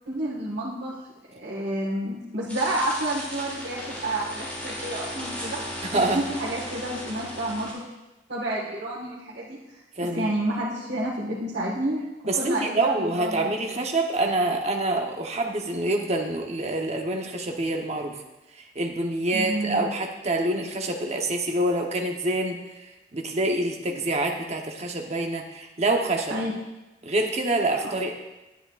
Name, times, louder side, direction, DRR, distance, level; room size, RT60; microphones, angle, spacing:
voice 1, 0.0-0.9 1.3-5.6 5.9-7.8 8.3-9.6 10.1-12.0 12.4-13.5 19.3-19.8 26.3-26.5, right 1 dB, 70° right, -8 dB, 1.6 m, -29 dB
sound 1, 2.5-7.7, equal, 10° left, 2.7 m, -36 dB
voice 2, 5.8-6.2 10.0-10.3 12.3-18.2 18.6-22.6 23.1-26.4 27.0-28.1, right 2 dB, 40° right, 2 dB, 0.9 m, -26 dB
10.0 x 9.7 x 2.4 m, 1.0 s
head